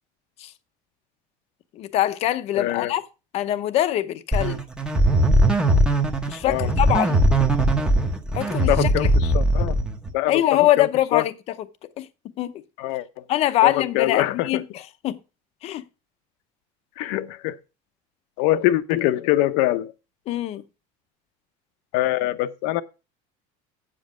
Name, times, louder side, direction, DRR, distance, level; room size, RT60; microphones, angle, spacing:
voice 1, 1.7-3.0 3.3-4.6 6.3-7.2 8.3-8.9 10.3-11.6 12.0-12.1 12.4-12.5 13.3-15.2 15.6-15.8 20.3-20.6, left 13 dB, 40° left, 0.7 m, -23 dB
voice 2, 2.5-2.9 6.4-6.7 8.7-9.8 10.1-10.4 10.8-11.2 12.8-13.2 13.6-14.6 17.0-17.6 18.4-19.9 21.9-22.8, left 15 dB, 70° left, 0.8 m, -23 dB
sound 1, 4.3-10.1, right 1 dB, 5° right, 0.8 m, -20 dB
8.4 x 7.6 x 4.9 m
cardioid pair, 175°, 17 cm